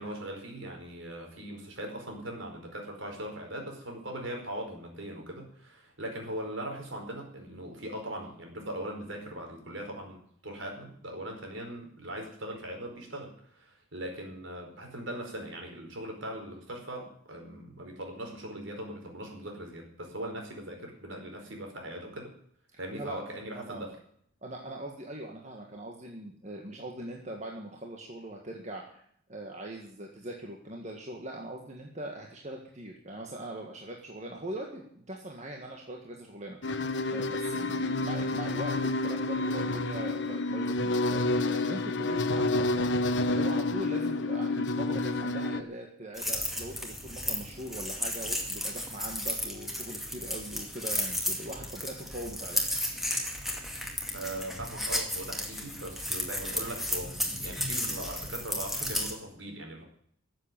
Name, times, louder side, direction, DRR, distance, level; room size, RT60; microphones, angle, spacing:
voice 1, 0.0-22.3 22.8-24.0 54.1-59.8, right 1 dB, 60° right, 2 dB, 4.8 m, -40 dB
voice 2, 22.7-23.2 23.5-23.8 24.4-29.0 29.3-36.8 37.1-52.8, right 1 dB, 35° right, 0 dB, 1.8 m, -41 dB
sound 1, 36.6-45.6, left 2 dB, 55° left, 0.9 m, -29 dB
sound 2, 46.1-59.1, left 1 dB, ahead, 2.2 m, -34 dB
14.0 x 7.8 x 9.2 m, 0.65 s
head